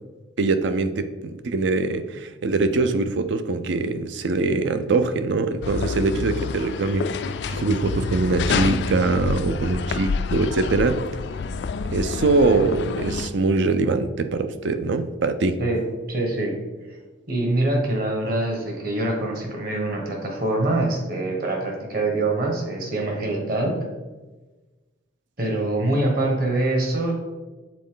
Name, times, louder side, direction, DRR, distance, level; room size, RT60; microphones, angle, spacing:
voice 1, 0.4-11.0 11.9-15.6, right 3 dB, 70° right, 10 dB, 0.5 m, -23 dB
sound 1, 5.6-13.3, left 5 dB, 60° left, 0.3 m, -28 dB
voice 2, 16.1-16.6 16.9-17.0 17.3-23.8 25.4-27.1, right 2 dB, 50° right, 1 dB, 1.4 m, -24 dB
7.5 x 4.1 x 3.8 m, 1.2 s
head